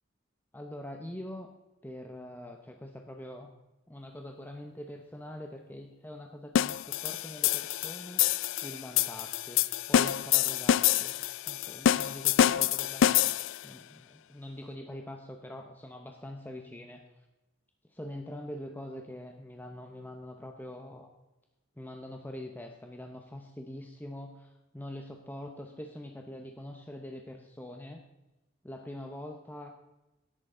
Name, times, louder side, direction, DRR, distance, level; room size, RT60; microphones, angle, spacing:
voice 1, 0.5-1.5 1.8-3.5 3.9-8.3 8.6-11.2 11.4-17.0 17.9-21.1 21.8-28.0 28.6-29.7, left 1 dB, 10° left, 3 dB, 0.8 m, -44 dB
sound 1, 6.6-13.7, left 11 dB, 75° left, 0.3 m, -27 dB
13.5 x 10.0 x 3.8 m, 1.0 s
head